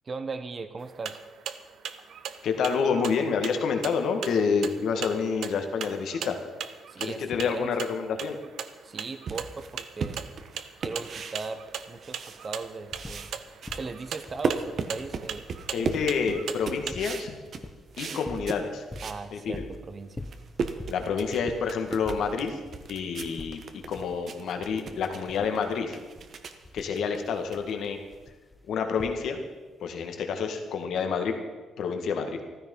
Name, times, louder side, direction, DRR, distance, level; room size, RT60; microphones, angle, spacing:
voice 1, 0.0-1.2 6.9-7.7 8.8-10.2 10.8-11.6 11.9-13.3 13.7-15.4 15.8-15.9 19.0-20.3, right 4 dB, 40° right, 10 dB, 1.1 m, -38 dB
sound 1, 0.8-16.9, right 8 dB, 70° right, 0.9 m, -39 dB
voice 2, 2.4-6.4 7.0-8.4 15.7-17.4 18.0-18.8 19.3-19.6 20.9-22.6 22.9-26.0 26.7-28.0 28.7-29.4 29.8-31.4 31.8-32.4, left 5 dB, 70° left, 5 dB, 1.9 m, -28 dB
sound 2, 9.3-12.7 12.9-19.2 19.7-19.8 20.1-28.2, right 5 dB, 55° right, 1.3 m, -36 dB
sound 3, 11.6-11.7 11.9-13.4 13.6-29.6 30.7-30.8, left 2 dB, 15° left, 1.1 m, -46 dB
14.5 x 13.0 x 5.5 m, 1.3 s
cardioid pair, 90°, 0 cm